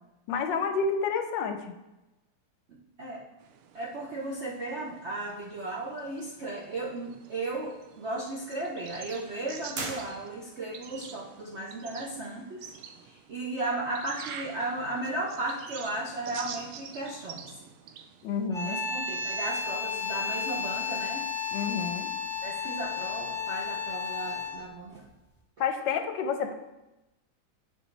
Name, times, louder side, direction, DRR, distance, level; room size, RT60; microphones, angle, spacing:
voice 1, 0.3-1.8 18.2-18.9 21.5-22.1 25.6-26.5, left 5 dB, 75° left, 7 dB, 1.2 m, -29 dB
voice 2, 2.7-3.2 3.7-12.7 13.0-17.5 18.6-21.3 22.4-25.1, right 2 dB, 70° right, -2 dB, 0.6 m, -35 dB
sound 1, 3.4-18.5, right 7 dB, 85° right, 1.4 m, -47 dB
sound 2, 9.7-10.7, right 3 dB, 55° right, 1.2 m, -38 dB
sound 3, 18.5-24.7, left 5 dB, 20° right, 0.5 m, -33 dB
7.9 x 5.4 x 3.2 m, 0.98 s
omnidirectional pair, 2.2 m